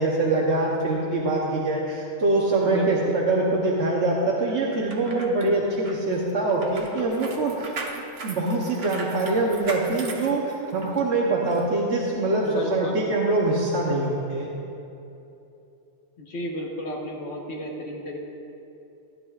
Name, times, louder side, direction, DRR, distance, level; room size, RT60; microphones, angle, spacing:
voice 1, 0.0-7.7 8.2-14.5, right 2 dB, 85° right, -3 dB, 1.3 m, -24 dB
voice 2, 2.6-3.1 12.4-13.0 16.2-18.2, left 1 dB, 75° left, -2 dB, 1.4 m, -33 dB
sound 1, 4.7-11.0 11.5-11.6, right 3 dB, 65° right, 1.2 m, -38 dB
15.0 x 10.5 x 2.4 m, 2.8 s
omnidirectional pair, 1.1 m